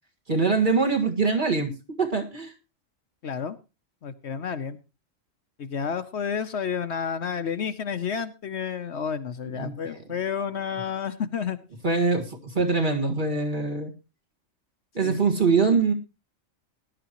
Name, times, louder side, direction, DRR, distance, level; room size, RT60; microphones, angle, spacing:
voice 1, 0.3-1.7 2.0-2.5 9.6-9.7 11.8-13.9 14.9-15.9, right 4 dB, 40° right, 1 dB, 2.0 m, -23 dB
voice 2, 3.2-3.6 4.0-4.8 5.6-11.6 15.0-15.2, left 7 dB, 60° left, 10 dB, 1.0 m, -30 dB
20.0 x 11.0 x 3.0 m, 0.29 s
omnidirectional pair, 1.4 m